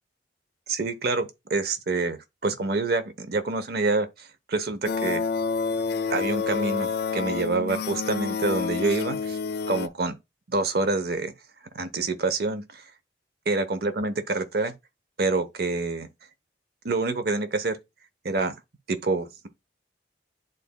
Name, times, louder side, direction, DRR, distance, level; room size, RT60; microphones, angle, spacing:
voice 1, 0.7-5.2 6.1-9.4 9.7-10.2 10.5-11.3 11.7-12.8 13.5-14.7 15.2-16.1 16.8-17.8 18.2-18.5 18.9-19.5, right 3 dB, 60° right, 0.8 m, -27 dB
sound 1, 4.8-9.9, left 5 dB, 60° left, 0.4 m, -28 dB
11.0 x 4.0 x 2.2 m
head